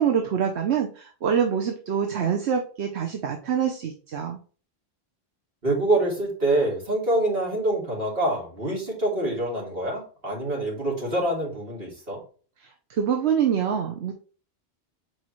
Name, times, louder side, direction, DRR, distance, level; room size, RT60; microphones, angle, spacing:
voice 1, 0.0-4.4 12.9-14.1, right 8 dB, 85° right, 3 dB, 1.1 m, -25 dB
voice 2, 5.6-12.2, right 1 dB, 60° right, -3 dB, 3.3 m, -25 dB
8.3 x 4.7 x 3.1 m, 0.39 s
omnidirectional pair, 1.1 m